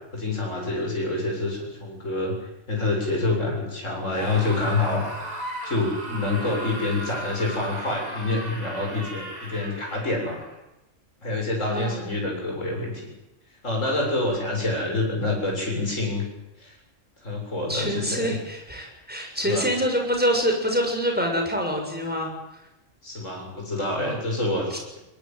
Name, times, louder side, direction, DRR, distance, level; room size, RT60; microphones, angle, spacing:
voice 1, 0.1-5.0 5.6-10.4 11.2-13.1 13.6-16.2 16.6-16.7 17.2-18.3 19.3-19.7 23.0-25.0, left 2 dB, 70° left, -1 dB, 7.9 m, -27 dB
Screaming, 4.1-10.6, right 1 dB, 30° right, 4.4 m, -36 dB
voice 2, 11.7-12.0 17.7-22.3 24.7-24.8, equal, 5° right, 2 dB, 6.7 m, -25 dB
22.0 x 21.5 x 9.2 m, 0.92 s
omnidirectional pair, 1.3 m